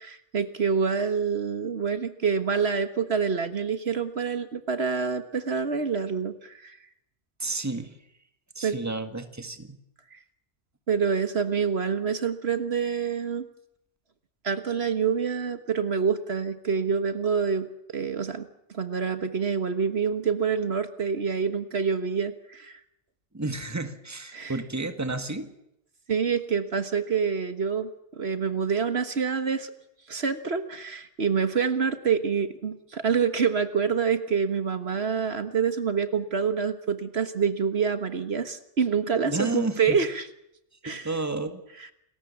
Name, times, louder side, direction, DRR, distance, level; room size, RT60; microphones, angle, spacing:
voice 1, 0.0-6.8 8.6-8.8 10.1-10.2 10.9-13.5 14.4-17.7 17.9-18.5 18.7-22.8 24.3-24.5 26.1-27.9 28.2-29.7 30.1-40.3 40.8-41.1 41.8-41.9, right 6 dB, 65° right, 10 dB, 1.6 m, -27 dB
voice 2, 7.4-8.0 8.6-9.8 23.3-25.5 39.2-40.0 40.9-41.6, right 2 dB, 15° right, 8 dB, 1.7 m, -31 dB
28.5 x 20.5 x 7.2 m, 0.81 s
omnidirectional pair, 1.2 m